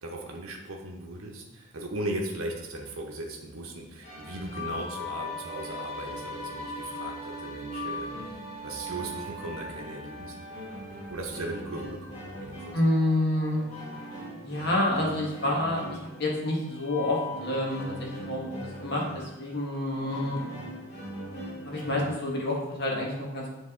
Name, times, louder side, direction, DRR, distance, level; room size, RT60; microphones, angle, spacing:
voice 1, 0.0-10.4 11.1-12.7, right 1 dB, 80° right, 0 dB, 0.8 m, -38 dB
sound 1, 4.0-22.1, left 1 dB, 30° left, 1.8 m, -39 dB
voice 2, 12.7-13.6 14.4-20.4 21.6-23.4, left 1 dB, 50° left, -2 dB, 1.5 m, -28 dB
7.4 x 3.5 x 3.7 m, 0.97 s
head